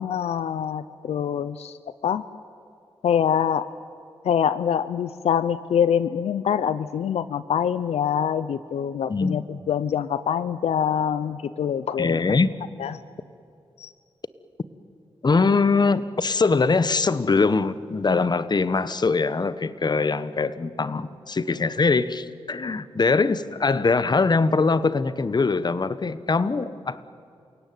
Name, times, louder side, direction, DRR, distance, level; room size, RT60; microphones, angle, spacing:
voice 1, 0.0-1.8 2.0-2.2 3.0-3.7 4.2-12.2 12.8-13.0 13.8-13.9, left 8 dB, 85° left, 15 dB, 0.6 m, -25 dB
voice 2, 9.1-9.4 12.0-12.5 15.2-27.0, left 4 dB, 40° left, 15 dB, 1.1 m, -22 dB
29.0 x 17.5 x 9.4 m, 2.5 s
cardioid pair, 60°, 11 cm